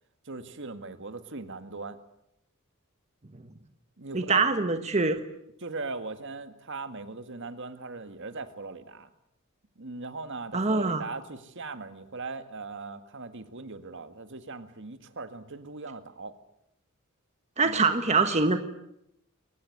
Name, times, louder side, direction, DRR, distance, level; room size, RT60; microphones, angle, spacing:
voice 1, 0.3-2.0 4.0-4.4 5.6-9.1 9.8-16.4 17.6-17.9, right 3 dB, 60° right, 9 dB, 1.9 m, -39 dB
voice 2, 4.1-5.2 10.5-11.0 17.6-18.6, right 4 dB, 35° right, 7 dB, 1.4 m, -24 dB
23.0 x 19.5 x 9.5 m, 0.79 s
head